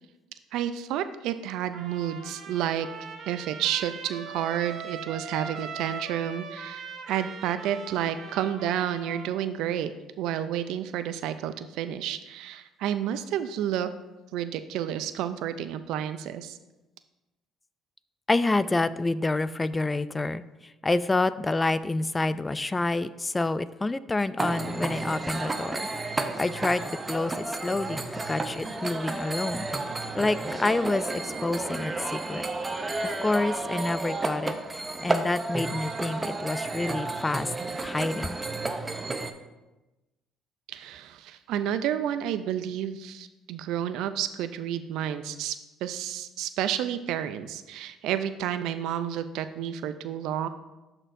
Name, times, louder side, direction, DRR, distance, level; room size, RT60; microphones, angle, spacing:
voice 1, 0.5-2.9 3.3-9.9 10.2-13.9 14.3-16.6 40.7-50.5, right 10 dB, 75° right, 11 dB, 0.4 m, -30 dB
Trumpet, 1.7-9.3, right 5 dB, 60° right, 0.9 m, -40 dB
voice 2, 18.3-32.5 33.0-37.5 37.8-38.4, left 2 dB, 20° left, 15 dB, 0.3 m, -28 dB
sound 1, 24.4-39.3, right 2 dB, 20° right, 0.6 m, -32 dB
12.0 x 4.4 x 2.6 m, 1.1 s
supercardioid pair, 75°, 0 cm